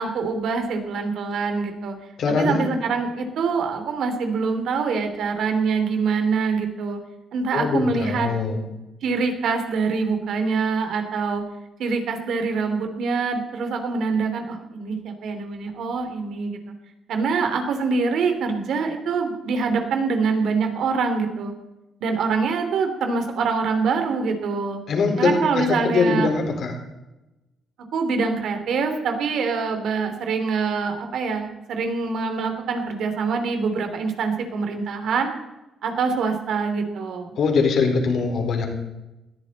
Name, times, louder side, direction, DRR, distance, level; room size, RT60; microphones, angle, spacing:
voice 1, 0.0-1.9 2.3-7.0 7.3-8.3 9.0-11.4 11.8-16.6 17.1-21.5 22.0-24.8 25.2-26.3 27.9-35.3 35.8-37.3, right 4 dB, 75° right, 6 dB, 3.0 m, -24 dB
voice 2, 2.2-2.6 7.5-8.6 24.9-26.7 37.4-38.7, left 4 dB, 65° left, 2 dB, 4.4 m, -22 dB
20.0 x 14.5 x 4.2 m, 0.98 s
cardioid pair, 90°, 0 cm